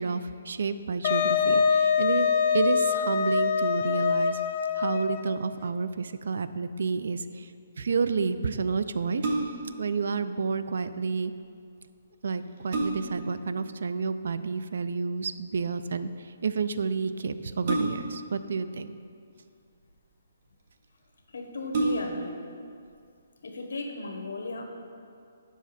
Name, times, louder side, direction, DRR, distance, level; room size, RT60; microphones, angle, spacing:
voice 1, 0.0-2.3 2.5-4.4 4.7-7.5 7.8-9.3 9.8-11.3 12.2-19.0, right 4 dB, 70° right, 12 dB, 0.3 m, -30 dB
Wind instrument woodwind instrument, 1.0-5.4, left 6 dB, 40° left, 0.4 m, -24 dB
sound 1, 9.2-9.8 11.8-11.9 12.3-13.3 14.8-15.2 17.6-18.3 19.2-19.9 20.7-20.8 21.1-21.2 21.7-22.3 22.8-22.9, right 2 dB, 45° right, 1.1 m, -30 dB
voice 2, 21.3-22.4 23.4-24.6, left 2 dB, 80° left, 3 dB, 1.1 m, -36 dB
7.2 x 5.7 x 4.1 m, 2.3 s
hypercardioid pair, 165°, 0 cm